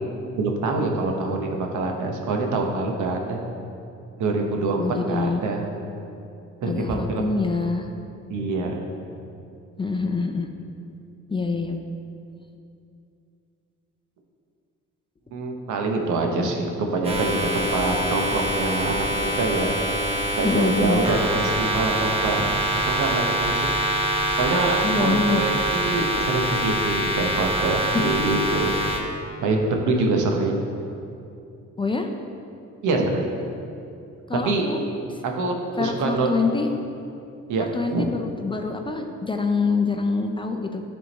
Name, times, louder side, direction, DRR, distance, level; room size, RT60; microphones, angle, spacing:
voice 1, 0.3-3.4 4.2-5.6 6.6-7.2 8.3-8.8 15.3-19.7 20.4-22.4 22.7-23.7 24.4-28.7 29.4-30.6 32.8-33.2 34.4-34.7 35.2-36.3 37.5-38.1, right 3 dB, 75° right, 2 dB, 0.9 m, -25 dB
voice 2, 4.8-5.4 6.7-7.9 9.8-10.5 11.3-11.8 20.4-21.0 24.8-25.5 27.8-28.0 31.8-32.1 34.3-34.8 35.8-36.7 37.7-40.8, left 4 dB, 15° left, 4 dB, 0.4 m, -25 dB
sound 1, 17.0-29.0, right 1 dB, 20° right, 1.1 m, -25 dB
10.0 x 3.6 x 4.0 m, 2.7 s
cardioid pair, 90°, 30 cm